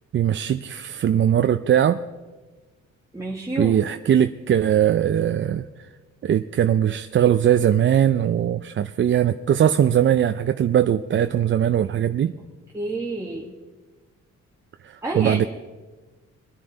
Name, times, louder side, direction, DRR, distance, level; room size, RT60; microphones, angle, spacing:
voice 1, 0.1-2.0 3.6-5.6 6.2-12.3 14.8-15.5, right 10 dB, 40° right, 9 dB, 0.5 m, -20 dB
voice 2, 3.1-3.8 12.7-13.5 15.0-15.4, right 2 dB, 10° right, -3 dB, 1.5 m, -29 dB
22.0 x 10.0 x 4.0 m, 1.3 s
cardioid pair, 90°, 30 cm